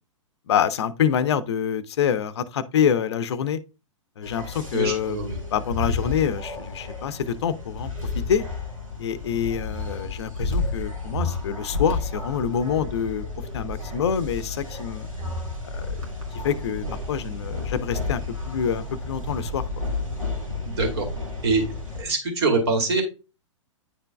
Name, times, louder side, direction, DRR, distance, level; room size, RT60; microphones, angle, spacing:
voice 1, 0.5-3.6 4.2-5.2 5.5-8.4 9.0-13.2 13.5-15.1 15.6-15.9 16.4-19.8, left 8 dB, 55° left, 0.6 m, -26 dB
sound 1, 4.2-22.0, left 3 dB, 90° right, 2.0 m, -31 dB
voice 2, 4.7-5.4 20.7-21.1 21.4-21.6 22.0-23.0, right 3 dB, 55° right, 2.4 m, -24 dB
9.8 x 4.4 x 2.2 m
figure-of-eight pair, 110°, 17 cm